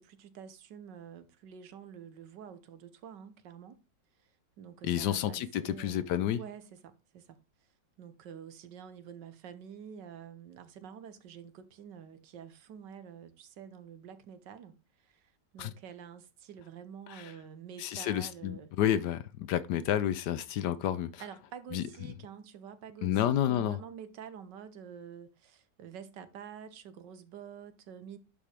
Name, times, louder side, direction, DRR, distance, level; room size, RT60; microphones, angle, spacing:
voice 1, 0.0-3.8 4.2-7.4 8.0-18.7 21.2-28.2, right 8 dB, 75° right, 1.6 m, -48 dB
voice 2, 4.8-6.4 15.6-15.7 17.8-21.2 21.7-21.8 23.0-23.8, left 11 dB, 75° left, 1.2 m, -30 dB
11.0 x 5.2 x 3.3 m
omnidirectional pair, 1.9 m